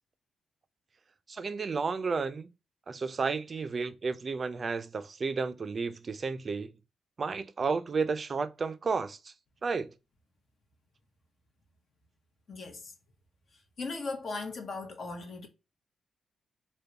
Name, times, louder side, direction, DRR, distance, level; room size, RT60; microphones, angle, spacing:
voice 1, 1.3-2.5 2.9-6.7 7.2-9.3 9.6-9.9, right 4 dB, 45° right, 0.4 m, -32 dB
voice 2, 12.5-12.9 13.8-15.5, left 3 dB, 55° left, 0.8 m, -38 dB
3.5 x 2.2 x 2.7 m
cardioid pair, 95°, 0 cm